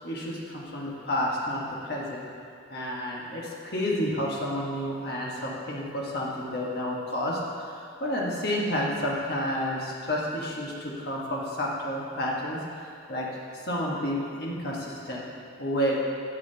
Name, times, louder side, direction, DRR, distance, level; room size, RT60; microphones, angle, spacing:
voice 1, 0.0-2.3 2.7-13.3 13.6-15.3 15.6-16.0, equal, 55° left, -4 dB, 1.4 m, -30 dB
11.0 x 7.6 x 2.8 m, 2.4 s
head